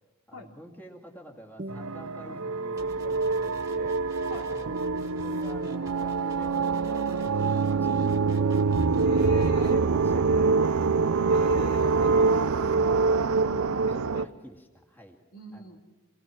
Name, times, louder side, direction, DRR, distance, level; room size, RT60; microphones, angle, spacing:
voice 1, 0.3-4.8 5.1-11.3 13.9-15.2 15.5-15.7, equal, 10° left, 1 dB, 2.2 m, -47 dB
sound 1, 1.6-6.6, equal, 35° right, 0.8 m, -48 dB
sound 2, 1.7-14.2, right 4 dB, 80° right, 0.6 m, -25 dB
sound 3, 2.8-9.8, right 1 dB, 15° right, 2.1 m, -49 dB
voice 2, 9.0-9.8 11.2-12.4 12.9-14.3 15.3-15.8, left 2 dB, 80° left, 0 dB, 3.1 m, -42 dB
27.0 x 19.0 x 6.1 m, 1.2 s
head